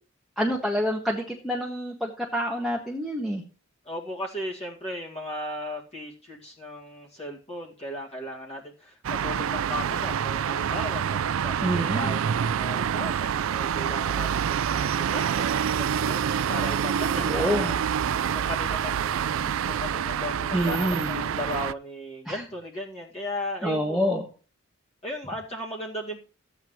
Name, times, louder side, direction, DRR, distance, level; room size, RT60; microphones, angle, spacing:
voice 1, 0.4-3.4 11.6-12.2 17.1-17.7 19.4-19.5 20.5-21.4 22.3-22.4 23.6-24.2, equal, ahead, -2 dB, 1.4 m, -27 dB
voice 2, 3.8-14.4 14.7-17.8 18.3-24.0 25.0-26.2, left 1 dB, 30° left, -3 dB, 2.1 m, -36 dB
sound 1, 9.0-21.7, right 8 dB, 80° right, 0.4 m, -27 dB
14.5 x 9.0 x 3.1 m, 0.37 s
head